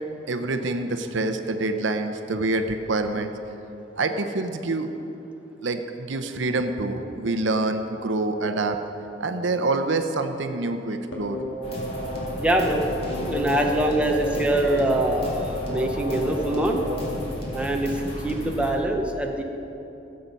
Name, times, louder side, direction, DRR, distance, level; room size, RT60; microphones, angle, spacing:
voice 1, 0.3-3.3 4.0-4.9 5.6-8.8 9.2-11.4, right 2 dB, 75° right, 7 dB, 0.8 m, -26 dB
sound 1, 11.1-17.1, left 1 dB, 65° left, 2.2 m, -33 dB
sound 2, 11.6-18.7, equal, 30° left, 2.1 m, -34 dB
voice 2, 12.4-12.8 13.3-16.8 17.5-19.4, right 1 dB, 5° right, 1 dB, 0.8 m, -24 dB
16.0 x 7.7 x 5.4 m, 3.0 s
head